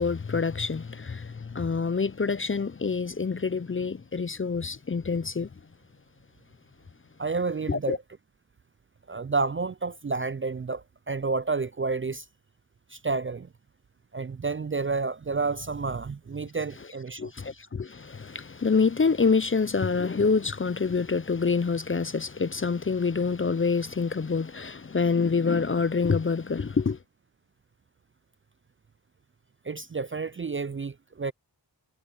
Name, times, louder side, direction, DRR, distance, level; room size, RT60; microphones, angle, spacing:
voice 1, 0.0-5.5 7.7-8.0 17.2-27.0, left 5 dB, 30° left, 0.5 m, -26 dB
voice 2, 7.2-8.0 9.1-12.3 12.9-13.5 14.1-17.3 29.6-31.3, right 4 dB, 30° right, 0.4 m, -30 dB
cardioid pair, 40°, 43 cm